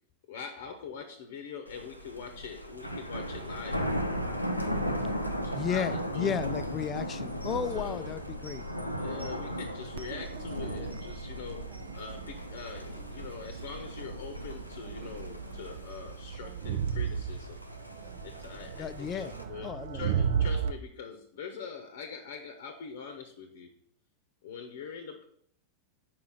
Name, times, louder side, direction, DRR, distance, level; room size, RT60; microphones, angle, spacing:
voice 1, 0.3-3.8 5.4-6.3 7.7-8.2 8.9-11.6 11.9-17.6 18.2-19.7 19.9-23.7 24.4-25.3, left 6 dB, 55° left, 5 dB, 0.8 m, -43 dB
Thunder, 1.7-19.4, equal, 90° left, 0.6 m, -37 dB
voice 2, 5.5-8.6 18.8-19.3 19.6-20.0, left 7 dB, 25° left, 13 dB, 0.4 m, -34 dB
Crowd, 10.0-20.7, right 7 dB, 55° right, 0.4 m, -36 dB
4.8 x 4.7 x 5.6 m, 0.65 s
figure-of-eight pair, 90°, 0 cm